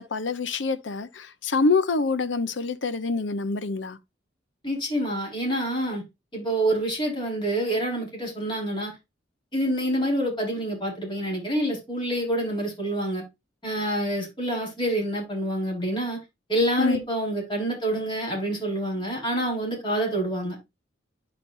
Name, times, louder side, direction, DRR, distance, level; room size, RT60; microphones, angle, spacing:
voice 1, 0.0-4.0 16.8-17.0, left 3 dB, 80° left, 0.8 m, -26 dB
voice 2, 4.6-6.0 6.3-8.9 9.5-13.2 13.6-16.2 16.5-20.6, right 1 dB, 25° left, 5.0 m, -27 dB
10.5 x 5.2 x 2.6 m
head